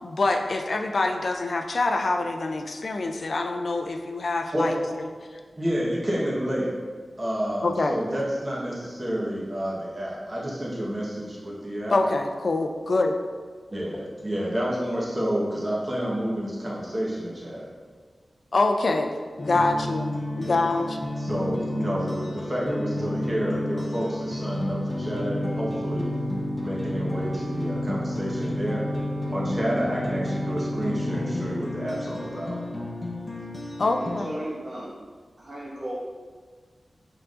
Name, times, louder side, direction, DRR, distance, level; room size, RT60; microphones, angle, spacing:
voice 1, 0.0-4.8 5.3-5.4 7.6-8.0 11.9-13.2 18.5-19.1 19.4-20.1 20.4-21.0 33.8-34.3, left 2 dB, 60° left, 5 dB, 0.3 m, -25 dB
voice 2, 4.5-5.0 5.5-6.8 7.2-12.0 13.7-17.7 20.4-20.7 21.2-26.1 26.6-28.9 29.3-32.6, equal, 30° right, -5 dB, 1.1 m, -29 dB
sound 1, 19.4-34.2, left 1 dB, 25° left, 0.7 m, -30 dB
voice 3, 33.9-34.9 35.4-35.9, right 1 dB, 75° right, -6 dB, 1.2 m, -35 dB
4.6 x 3.8 x 2.5 m, 1.5 s
wide cardioid pair, 80°, 0 cm